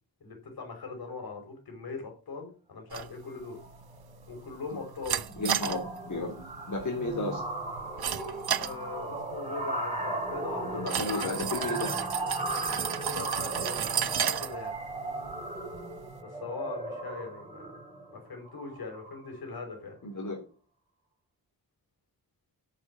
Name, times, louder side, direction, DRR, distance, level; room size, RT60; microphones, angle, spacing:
voice 1, 0.2-3.6 4.3-5.2 8.6-12.1 12.6-14.8 16.2-17.8 18.1-20.0, left 4 dB, 80° left, 3 dB, 5.6 m, -41 dB
sound 1, 2.9-16.2, right 9 dB, 90° right, 1.0 m, -35 dB
sound 2, 3.4-3.7 4.0-4.2 4.5-19.4, right 2 dB, 15° right, 5.3 m, -37 dB
voice 2, 5.4-6.3 6.7-7.4 10.7-11.9 20.0-20.4, left 2 dB, 60° left, 0 dB, 3.6 m, -33 dB
11.5 x 6.9 x 7.6 m, 0.35 s
wide cardioid pair, 125°, 36 cm